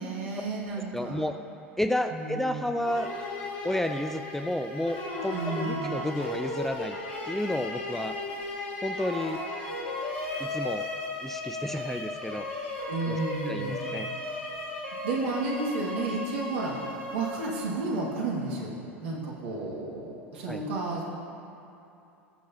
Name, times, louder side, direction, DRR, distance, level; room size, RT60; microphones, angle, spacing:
voice 1, 0.0-1.2 2.1-2.6 5.3-6.0 12.9-13.9 15.0-16.8 17.1-21.1, right 3 dB, 65° right, -2 dB, 1.8 m, -32 dB
voice 2, 0.9-1.4 1.8-3.1 3.6-7.0 7.3-8.2 8.8-9.4 10.4-10.9 11.2-12.5 13.1-13.2 13.5-14.1 20.5-20.6, left 1 dB, 5° left, 7 dB, 0.4 m, -31 dB
violin in, 2.8-17.9, left 2 dB, 65° left, 1.8 m, -35 dB
19.0 x 6.6 x 2.7 m, 2.8 s
figure-of-eight pair, 80°, 7 cm